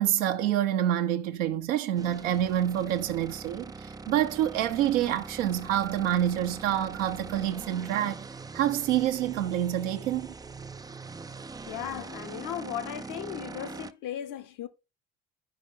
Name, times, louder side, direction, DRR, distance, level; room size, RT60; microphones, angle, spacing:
voice 1, 0.0-8.3 8.5-10.3, right 11 dB, 70° right, 1.0 m, -27 dB
sound 1, 2.0-13.9, right 4 dB, 10° right, 0.4 m, -42 dB
voice 2, 11.7-14.7, left 10 dB, 55° left, 1.0 m, -36 dB
11.0 x 5.2 x 3.8 m
figure-of-eight pair, 45°, 38 cm